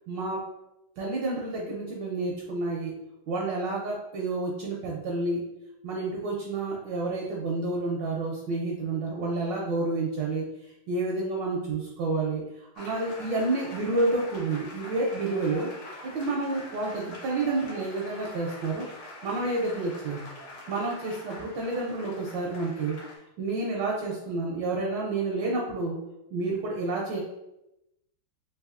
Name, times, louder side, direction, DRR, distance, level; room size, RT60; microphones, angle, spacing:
voice 1, 0.1-0.4 1.0-2.9 3.3-5.4 5.8-10.5 10.9-12.4 12.8-15.7 16.0-18.8 19.2-20.3 20.7-23.0 23.4-26.0 26.3-27.2, right 2 dB, 75° right, -2 dB, 1.1 m, -29 dB
sound 1, 12.8-23.2, left 1 dB, 55° left, 1.5 m, -44 dB
4.0 x 2.8 x 2.4 m, 0.88 s
omnidirectional pair, 2.4 m